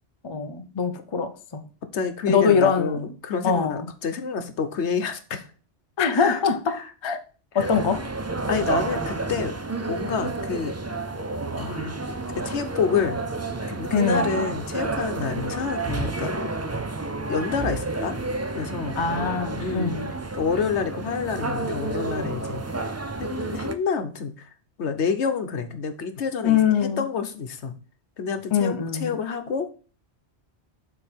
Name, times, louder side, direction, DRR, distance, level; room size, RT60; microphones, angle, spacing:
voice 1, 0.2-1.6 2.3-3.0 3.4-3.9 6.0-7.2 7.5-8.1 13.9-14.5 19.0-20.1 26.4-27.1 28.5-29.1, left 6 dB, 30° left, 0.6 m, -23 dB
voice 2, 1.9-5.5 6.1-6.4 6.7-6.9 7.5-7.7 8.5-9.5 9.9-10.8 11.6-12.0 12.3-13.2 13.7-16.3 17.3-18.2 18.6-19.0 19.6-20.0 20.4-22.6 23.2-24.5 24.8-26.6 27.0-27.7 28.2-29.7, left 6 dB, 80° left, 1.2 m, -28 dB
sound 1, 7.6-23.8, right 3 dB, 20° right, 0.4 m, -30 dB
6.8 x 4.4 x 4.4 m
omnidirectional pair, 1.1 m